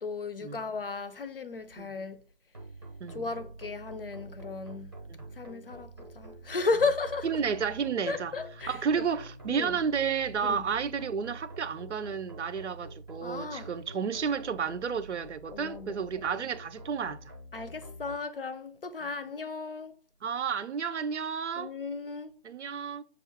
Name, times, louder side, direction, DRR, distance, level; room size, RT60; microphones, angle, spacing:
voice 1, 0.0-2.2 3.1-4.9 5.3-7.3 8.1-9.1 9.5-9.8 10.4-10.7 13.2-13.8 15.5-16.0 16.4-16.5 17.5-20.0 21.6-22.3, left 4 dB, 55° left, 0.5 m, -34 dB
sound 1, 2.5-18.1, right 1 dB, 20° right, 0.7 m, -46 dB
voice 2, 7.2-8.3 8.7-17.2 20.2-21.7 22.4-23.0, right 6 dB, 80° right, 0.6 m, -31 dB
6.3 x 2.4 x 3.4 m
figure-of-eight pair, 170°, 35 cm